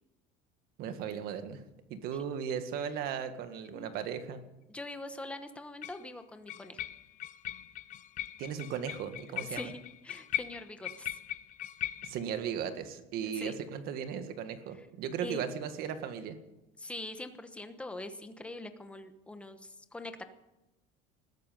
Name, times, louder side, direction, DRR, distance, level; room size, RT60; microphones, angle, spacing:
voice 1, 0.8-1.6 1.9-4.4 8.4-9.7 12.0-16.4, right 8 dB, 55° right, 9 dB, 1.8 m, -36 dB
sound 1, 3.7-3.8 5.8-6.1 6.5-12.2, left 14 dB, 45° left, 0.7 m, -40 dB
voice 2, 4.7-6.8 9.5-11.2 13.2-13.6 14.7-14.9 15.2-15.4 16.8-20.2, left 2 dB, 5° left, 8 dB, 1.1 m, -43 dB
20.5 x 13.0 x 5.3 m, 1.0 s
cardioid pair, 160°, 19 cm